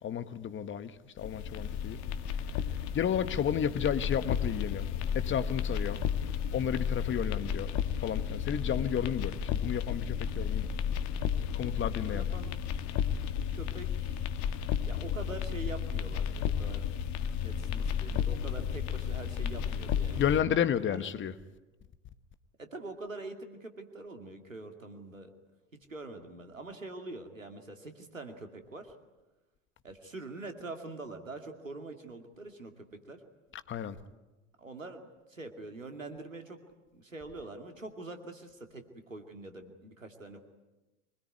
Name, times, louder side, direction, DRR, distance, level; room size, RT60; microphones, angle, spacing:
voice 1, 0.0-2.0 2.9-4.8 5.1-6.0 6.5-7.7 8.0-10.7 11.5-12.3 20.1-21.3 33.7-34.0, left 9 dB, 30° left, 1.5 m, -32 dB
sound 1, 1.2-20.4, left 8 dB, 50° left, 1.7 m, -33 dB
voice 2, 12.0-12.6 13.2-14.5 14.9-16.9 17.4-20.3 22.6-25.3 25.9-28.9 29.8-33.2 34.6-36.6 36.9-40.4, right 2 dB, 90° right, 2.5 m, -44 dB
25.0 x 20.5 x 9.6 m
figure-of-eight pair, 75°, 38 cm